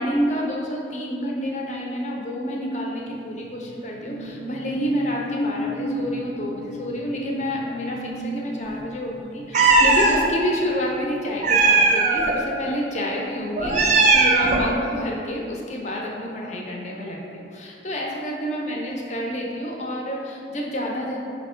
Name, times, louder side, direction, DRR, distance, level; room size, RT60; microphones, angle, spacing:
voice 1, 0.0-21.2, equal, 40° left, -2 dB, 0.5 m, -29 dB
sound 1, 3.1-12.1 12.4-12.7, left 1 dB, 85° left, 0.5 m, -34 dB
Meow, 9.5-10.2 11.4-12.3 13.6-14.7, right 3 dB, 40° right, 0.4 m, -17 dB
4.2 x 2.9 x 4.3 m, 2.7 s
head